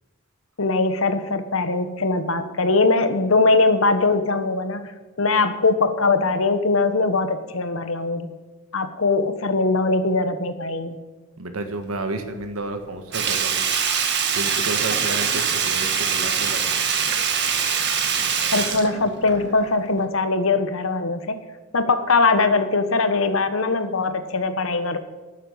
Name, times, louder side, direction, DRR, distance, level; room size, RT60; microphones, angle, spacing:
voice 1, 0.6-8.3 8.7-11.0 18.5-21.4 21.7-25.0, left 3 dB, 70° left, 9 dB, 1.3 m, -21 dB
voice 2, 11.4-13.7 14.3-16.6, right 2 dB, 90° right, 6 dB, 1.6 m, -31 dB
Sink (filling or washing), 13.1-19.6 20.0-20.1, right 7 dB, 55° right, 1.7 m, -23 dB
12.5 x 9.0 x 7.9 m, 1.2 s
head